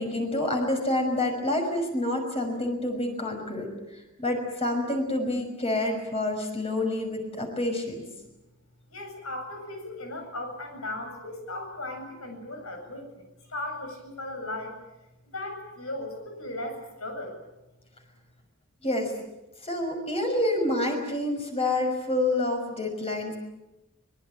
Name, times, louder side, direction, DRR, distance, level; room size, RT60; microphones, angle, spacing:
voice 1, 0.0-3.7 4.2-8.0 18.8-19.1 19.6-23.4, left 1 dB, 30° left, 3 dB, 5.9 m, -28 dB
voice 2, 8.9-14.7 15.3-17.4, left 1 dB, 80° left, 4 dB, 8.0 m, -37 dB
24.5 x 21.5 x 9.0 m, 0.99 s
head